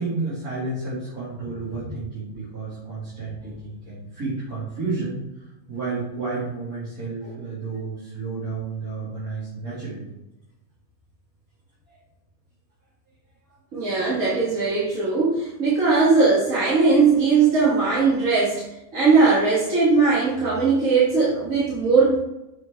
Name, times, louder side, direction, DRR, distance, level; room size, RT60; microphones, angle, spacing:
voice 1, 0.0-5.2 5.7-10.1 11.9-12.0, right 3 dB, 90° right, -12 dB, 3.3 m, -31 dB
voice 2, 13.7-18.6 18.9-22.1, right 4 dB, 65° right, -8 dB, 2.1 m, -19 dB
6.8 x 4.6 x 4.6 m, 0.90 s
omnidirectional pair, 1.5 m